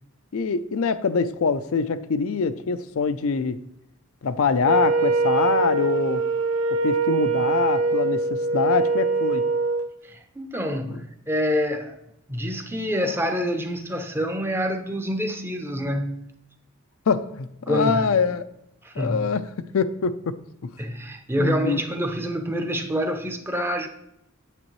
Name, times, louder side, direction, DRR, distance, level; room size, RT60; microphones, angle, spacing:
voice 1, 0.3-3.6 4.2-6.3 6.7-9.5 17.1-18.4 19.0-20.1 21.4-21.8, left 5 dB, 75° left, 0.4 m, -24 dB
Wind instrument woodwind instrument, 4.6-9.9, right 4 dB, 70° right, 0.5 m, -23 dB
voice 2, 10.0-12.0 12.3-16.3 17.7-18.1 18.8-19.3 20.8-23.9, equal, 10° right, 0.6 m, -27 dB
8.9 x 7.4 x 3.1 m
head